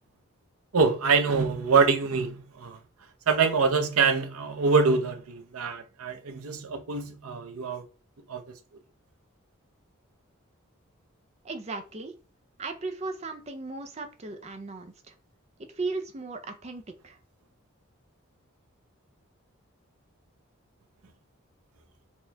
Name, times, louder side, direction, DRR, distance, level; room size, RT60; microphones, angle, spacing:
voice 1, 0.7-2.8 3.3-7.8 8.3-8.4, right 5 dB, 90° right, 0.8 m, -25 dB
voice 2, 11.4-12.1 12.6-15.1 15.7-17.2, right 3 dB, 30° right, 0.5 m, -36 dB
4.4 x 2.3 x 3.3 m
head